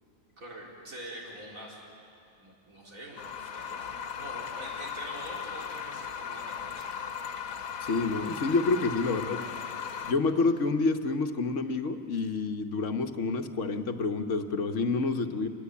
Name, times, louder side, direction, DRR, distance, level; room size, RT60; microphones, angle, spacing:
voice 1, 0.4-1.8 2.4-6.9 9.1-9.6, equal, 85° right, -3 dB, 4.6 m, -45 dB
sound 1, 3.2-10.1, left 7 dB, 85° left, 1.4 m, -37 dB
voice 2, 7.8-9.4 10.0-15.5, left 3 dB, 65° left, 6 dB, 1.5 m, -28 dB
28.0 x 22.0 x 8.4 m, 2.6 s
omnidirectional pair, 1.4 m